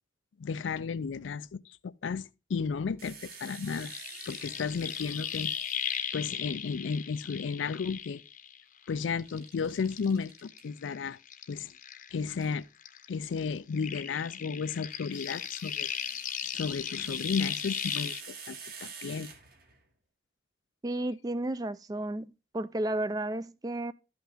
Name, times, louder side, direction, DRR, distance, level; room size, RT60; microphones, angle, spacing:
voice 1, 0.4-3.9 4.3-5.5 6.1-8.2 8.9-11.2 11.5-11.7 12.1-12.6 13.1-15.9 16.5-19.3, left 5 dB, 75° left, 0.4 m, -33 dB
sound 1, 3.0-6.3 9.2-10.6 12.4-12.6 14.7-19.8, right 6 dB, 50° right, 1.6 m, -49 dB
sound 2, 3.3-8.8 9.2-12.5 12.8-18.2, left 8 dB, 45° left, 0.7 m, -37 dB
voice 2, 20.8-23.9, right 1 dB, 20° right, 0.3 m, -33 dB
12.5 x 5.8 x 3.6 m
head